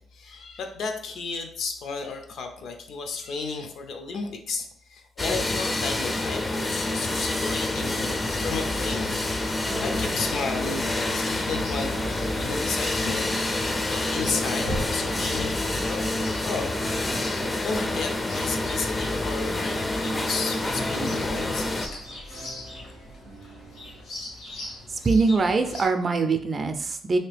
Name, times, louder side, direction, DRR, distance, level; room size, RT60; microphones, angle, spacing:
voice 1, 0.1-9.2 9.8-13.3 13.5-17.1 17.6-21.9, left 4 dB, 70° left, 5 dB, 0.5 m, -33 dB
sound 1, 5.2-21.9, left 2 dB, 20° left, 0.4 m, -28 dB
Chirp tweet, 6.9-25.9, left 2 dB, 85° left, 1.2 m, -40 dB
sound 2, 9.6-24.1, right 4 dB, 85° right, 0.5 m, -42 dB
voice 2, 24.9-27.2, right 4 dB, 35° right, 7 dB, 0.4 m, -23 dB
2.9 x 2.8 x 3.3 m, 0.63 s
cardioid pair, 90°, 0 cm